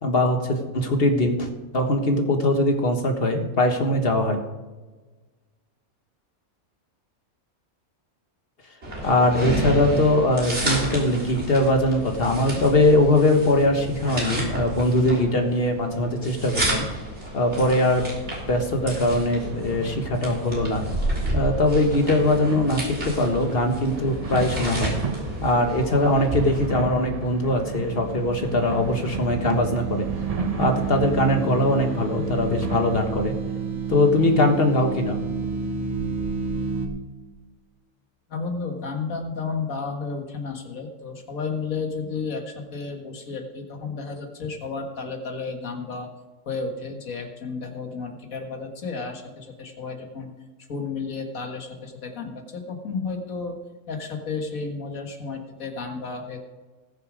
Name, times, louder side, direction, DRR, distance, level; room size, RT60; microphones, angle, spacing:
voice 1, 0.0-4.4 9.0-16.9 17.3-18.0 18.5-20.8 21.3-25.0 25.4-30.1 30.6-33.3 33.9-35.3, left 1 dB, 45° left, 4 dB, 1.6 m, -21 dB
sound 1, 8.8-26.7, right 1 dB, 50° right, 3.6 m, -31 dB
sound 2, 17.9-33.0, right 4 dB, 30° right, 0.8 m, -35 dB
sound 3, 27.0-36.9, right 4 dB, 70° right, 1.7 m, -30 dB
voice 2, 38.3-46.1 46.5-50.3 50.7-53.6 53.9-56.4, left 4 dB, 70° left, 3 dB, 2.0 m, -32 dB
19.0 x 6.7 x 5.1 m, 1.3 s
omnidirectional pair, 1.5 m